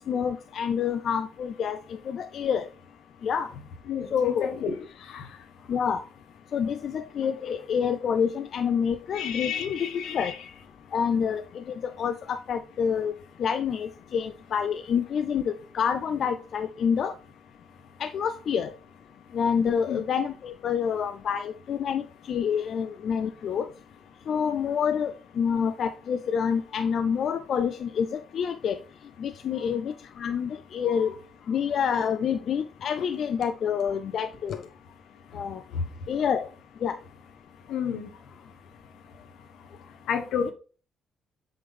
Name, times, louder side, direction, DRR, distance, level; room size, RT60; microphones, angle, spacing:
voice 1, 0.1-2.7 3.2-3.5 4.1-4.5 5.7-6.0 6.5-10.3 10.9-11.4 12.0-13.1 13.4-17.1 18.0-18.7 19.3-23.7 24.3-28.8 29.2-31.1 31.5-34.6 35.3-35.6 36.1-36.5 36.8-36.9 40.4-40.5, left 7 dB, 60° left, 0.4 m, -27 dB
voice 2, 3.9-4.8 5.1-5.3 9.1-10.4 19.9-20.0 30.9-31.0 35.7-35.8 37.7-38.1 40.1-40.5, left 7 dB, 80° left, 1.0 m, -31 dB
7.6 x 3.7 x 3.4 m
cardioid pair, 90°, 0 cm